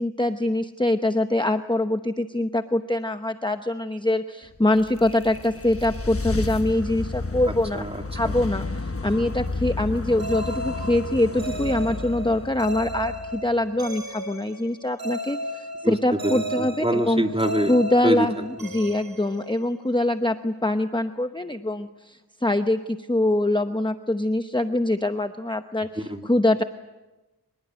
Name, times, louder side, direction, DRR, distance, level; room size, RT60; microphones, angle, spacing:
voice 1, 0.0-7.8 8.1-17.2 17.7-18.3 18.6-25.9 26.3-26.6, left 1 dB, 10° left, 8 dB, 0.9 m, -24 dB
sound 1, 4.6-13.8, left 3 dB, 35° left, 1.2 m, -32 dB
voice 2, 7.5-8.3 15.8-18.8 26.0-26.3, right 1 dB, 15° right, 4 dB, 2.5 m, -27 dB
sound 2, 10.2-20.0, right 1 dB, 65° right, 3.0 m, -35 dB
25.0 x 21.5 x 9.4 m, 1.1 s
wide cardioid pair, 45°, 39 cm